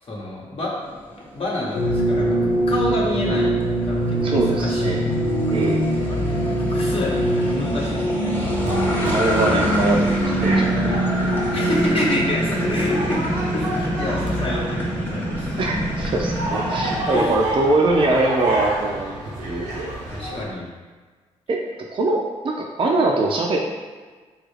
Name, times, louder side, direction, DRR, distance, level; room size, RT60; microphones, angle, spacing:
voice 1, 0.1-0.9 1.2-2.3 2.7-3.5 3.8-5.1 5.4-5.8 6.1-8.7 11.4-13.2 13.5-15.6 17.0-17.3 20.1-20.7, left 1 dB, 45° left, -5 dB, 0.9 m, -28 dB
sound 1, 0.9-17.0, right 1 dB, 15° left, 0.9 m, -26 dB
sound 2, 1.7-15.0, right 1 dB, 85° left, 0.5 m, -24 dB
voice 2, 4.2-5.0 5.5-5.8 9.1-10.7 15.6-19.1 19.4-19.6 21.5-21.6 21.9-23.6, right 2 dB, 45° right, -1 dB, 0.4 m, -22 dB
sound 3, 8.4-20.5, right 1 dB, 85° right, 0.7 m, -30 dB
3.2 x 2.4 x 3.2 m, 1.4 s
supercardioid pair, 55°, 13 cm